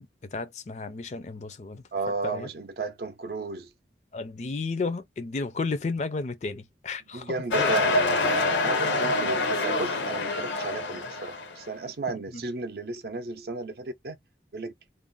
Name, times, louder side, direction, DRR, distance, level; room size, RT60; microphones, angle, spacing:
voice 1, 0.0-1.8 2.2-2.5 4.1-7.8 12.3-12.4, left 3 dB, 40° left, 0.4 m, -33 dB
voice 2, 1.9-3.7 7.1-14.2 14.5-14.7, right 3 dB, 60° right, 0.5 m, -33 dB
sound 1, 7.5-11.6, left 3 dB, 85° left, 0.7 m, -26 dB
2.5 x 2.0 x 3.7 m
head